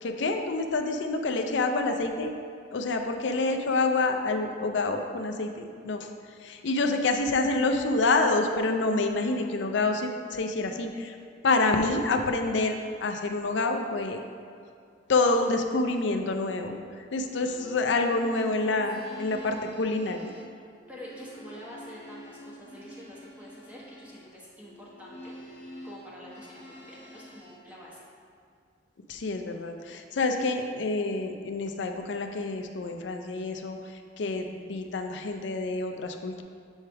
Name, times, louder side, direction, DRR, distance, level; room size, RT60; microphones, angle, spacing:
voice 1, 0.0-2.3 2.7-6.1 6.4-11.2 11.4-14.2 15.1-20.3 29.1-36.4, left 3 dB, 65° left, 5 dB, 0.5 m, -27 dB
sound 1, 17.3-27.6, equal, 35° left, 1.0 m, -47 dB
voice 2, 19.0-19.5 20.9-25.4 25.8-28.1, equal, 5° right, -7 dB, 1.1 m, -46 dB
7.2 x 3.3 x 4.5 m, 2.3 s
head